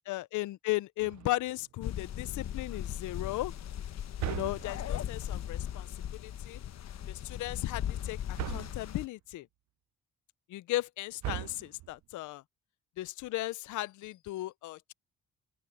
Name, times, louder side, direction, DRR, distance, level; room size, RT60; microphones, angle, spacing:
voice 1, 0.1-3.5 4.3-5.9 6.1-6.6 7.1-8.2 8.5-9.5 10.5-12.4 13.0-14.9, left 17 dB, 75° left, 0.6 m, -36 dB
sound 1, 1.0-1.6 4.2-5.1 8.4-9.0 11.2-12.0, right 15 dB, 65° right, 0.6 m, -39 dB
sound 2, 1.8-9.1, left 10 dB, 60° left, 1.1 m, -38 dB
open air
cardioid pair, 90°, 30 cm